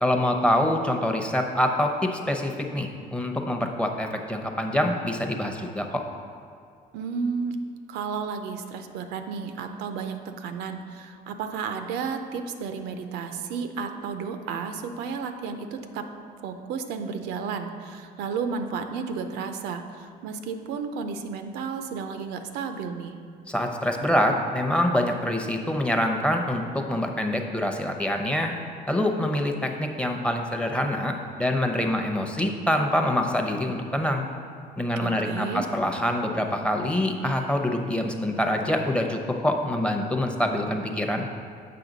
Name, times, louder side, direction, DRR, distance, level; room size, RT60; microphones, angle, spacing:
voice 1, 0.0-6.0 23.5-28.5 28.9-34.3 34.8-41.3, left 1 dB, 5° left, 3 dB, 0.7 m, -25 dB
voice 2, 6.9-7.6 7.9-16.0 16.4-23.2 35.0-35.6, right 5 dB, 90° right, 7 dB, 0.6 m, -32 dB
7.6 x 5.7 x 4.0 m, 2.4 s
cardioid pair, 110°, 17 cm